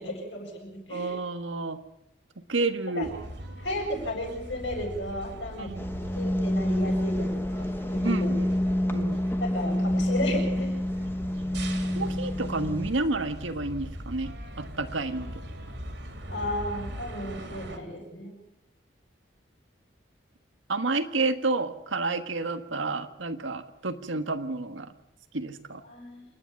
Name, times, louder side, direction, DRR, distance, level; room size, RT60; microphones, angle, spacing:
voice 1, 0.0-1.1 2.9-3.1 3.6-5.7 6.2-7.6 7.9-8.3 9.4-10.8 16.3-18.4 25.8-26.3, left 1 dB, 65° left, 0 dB, 7.7 m, -34 dB
voice 2, 0.9-1.8 2.5-3.1 5.6-5.8 8.0-8.5 8.9-9.2 11.9-15.3 20.7-24.9 25.3-25.8, right 3 dB, 80° right, 9 dB, 1.5 m, -30 dB
sound 1, 3.0-17.8, equal, 65° right, 3.4 m, -40 dB
sound 2, 5.8-12.9, left 1 dB, 10° left, 1.1 m, -28 dB
28.5 x 10.0 x 9.2 m, 0.86 s
head